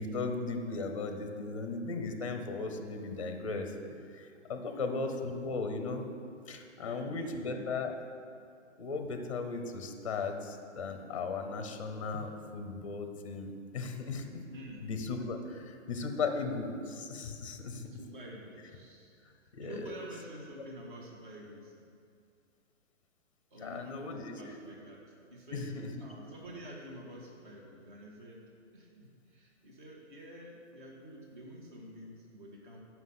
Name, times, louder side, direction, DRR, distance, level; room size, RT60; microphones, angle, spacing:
voice 1, 0.0-3.7 4.1-6.1 6.5-7.9 8.8-14.3 14.8-17.9 19.5-19.9 23.6-24.6 25.5-25.9, left 4 dB, 25° left, 6 dB, 0.6 m, -37 dB
voice 2, 4.4-4.9 6.7-7.7 14.5-14.9 17.9-19.1 19.6-21.7 23.5-25.0 25.3-25.7 26.0-28.4 28.7-32.8, right 1 dB, 40° right, -2 dB, 1.6 m, -48 dB
9.5 x 6.0 x 5.6 m, 2.3 s
hypercardioid pair, 180°, 37 cm